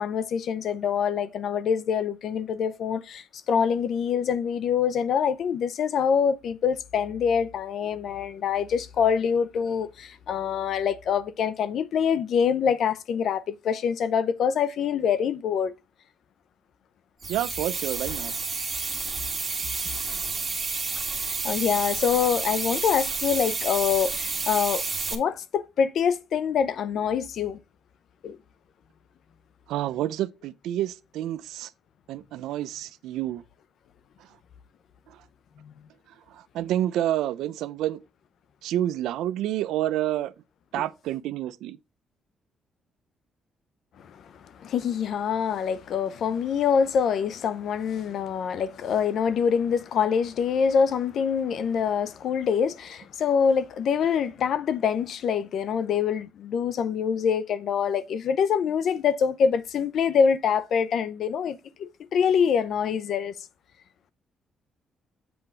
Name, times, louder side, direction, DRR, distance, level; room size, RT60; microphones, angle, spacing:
voice 1, 0.0-15.7 21.1-24.8 25.1-27.6 28.2-28.4 44.0-44.2 44.6-63.3, left 7 dB, 65° left, 0.7 m, -25 dB
sound 1, 17.2-25.2, right 4 dB, 30° right, 1.8 m, -30 dB
voice 2, 17.3-18.3 29.7-31.7 32.1-33.4 35.1-35.2 36.3-38.0 38.6-40.3 40.7-41.8, right 13 dB, 90° right, 0.5 m, -29 dB
7.9 x 3.8 x 4.4 m
cardioid pair, 90°, 0 cm